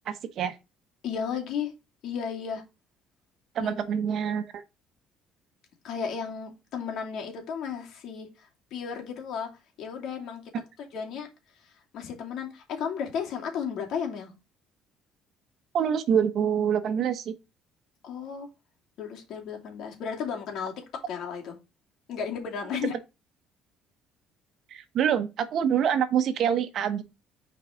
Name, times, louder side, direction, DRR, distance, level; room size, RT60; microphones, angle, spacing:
voice 1, 0.1-0.6 3.5-4.6 15.7-17.3 24.7-27.0, right 8 dB, 55° right, 1.1 m, -26 dB
voice 2, 1.0-1.7 2.0-2.6 3.6-3.7 5.8-9.5 9.8-10.4 10.9-11.3 11.9-14.3 18.0-18.5 19.0-21.6 22.1-22.9, left 7 dB, 65° left, 2.7 m, -34 dB
6.5 x 4.7 x 5.1 m
cardioid pair, 120°, 0 cm